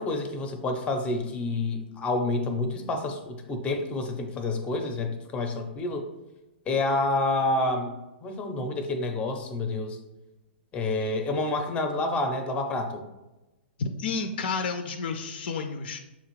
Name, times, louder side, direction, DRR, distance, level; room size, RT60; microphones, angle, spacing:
voice 1, 0.0-6.1 6.7-8.0 8.2-10.0 10.7-13.0, left 2 dB, 20° left, 6 dB, 0.6 m, -28 dB
voice 2, 13.8-16.0, left 4 dB, 60° left, 7 dB, 0.5 m, -31 dB
7.0 x 2.4 x 3.1 m, 1.0 s
hypercardioid pair, 120°, 6 cm